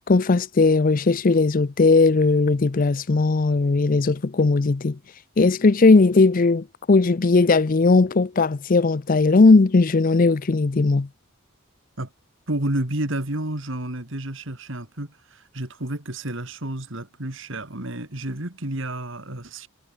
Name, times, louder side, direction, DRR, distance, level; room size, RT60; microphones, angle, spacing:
voice 1, 0.1-5.0 5.4-11.1, left 3 dB, 40° left, 0.5 m, -18 dB
voice 2, 12.5-19.7, right 1 dB, 60° right, 2.9 m, -30 dB
head